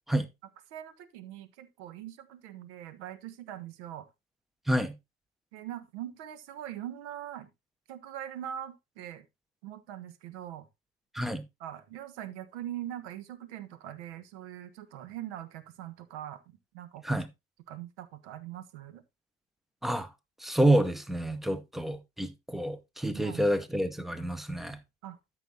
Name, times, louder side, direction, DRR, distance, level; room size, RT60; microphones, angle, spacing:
voice 1, 0.7-4.1 5.5-7.5 7.9-9.3 9.6-10.7 11.6-16.4 16.7-17.2 17.7-19.0 23.1-23.4 25.0-25.2, right 11 dB, 55° right, 1.4 m, -42 dB
voice 2, 20.4-24.8, right 1 dB, ahead, 0.8 m, -28 dB
12.5 x 6.2 x 2.8 m
figure-of-eight pair, 80°, 41 cm